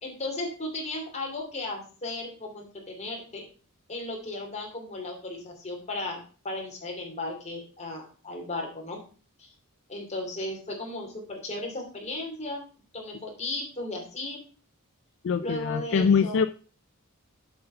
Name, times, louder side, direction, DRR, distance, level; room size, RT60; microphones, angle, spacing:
voice 1, 0.0-3.4 3.9-9.0 9.4-9.5 9.9-12.6 12.9-14.4 15.4-16.4, left 2 dB, 30° left, 1 dB, 2.9 m, -35 dB
voice 2, 15.2-16.5, left 6 dB, 60° left, 11 dB, 0.4 m, -23 dB
7.7 x 5.6 x 5.6 m, 0.38 s
head